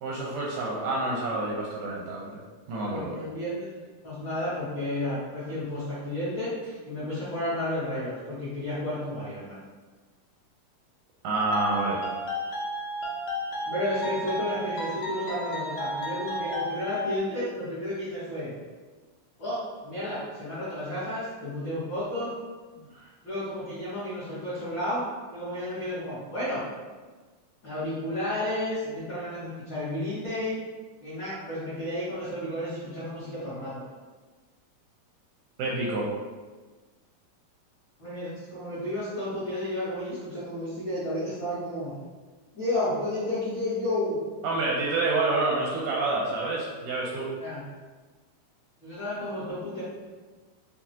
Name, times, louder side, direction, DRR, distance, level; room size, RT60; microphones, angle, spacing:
voice 1, 0.0-2.4 2.7-3.2 11.2-12.0 22.9-23.1 35.6-36.1 44.4-47.3, right 2 dB, 80° right, -4 dB, 1.9 m, -28 dB
voice 2, 2.8-3.8 4.0-6.5 6.8-9.6 13.7-18.5 19.4-22.3 23.2-25.0 25.3-26.6 27.6-30.6 31.0-33.8 38.0-41.9 42.5-44.3 47.4-47.6 48.8-49.8, left 1 dB, 60° left, -15 dB, 1.2 m, -32 dB
sound 1, 11.3-17.2, equal, 85° left, 2.4 m, -33 dB
5.8 x 2.2 x 2.7 m, 1.3 s
omnidirectional pair, 4.0 m